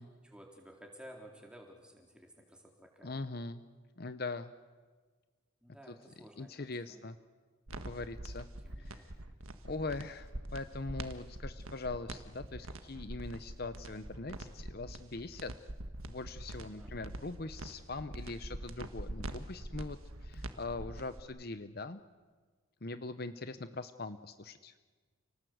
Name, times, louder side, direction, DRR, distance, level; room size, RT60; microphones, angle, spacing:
voice 1, 0.2-3.1 5.6-7.0 8.6-8.9 16.8-17.1, equal, 5° right, 1 dB, 3.8 m, -54 dB
voice 2, 3.0-3.6 4.0-4.5 5.9-6.0 6.4-7.2 7.8-8.5 8.8-9.0 9.6-15.5 16.1-22.0 22.8-24.7, left 3 dB, 50° left, 11 dB, 0.8 m, -41 dB
sound 1, 7.7-21.2, right 1 dB, 85° right, 1.6 m, -44 dB
29.5 x 19.0 x 8.0 m, 1.4 s
head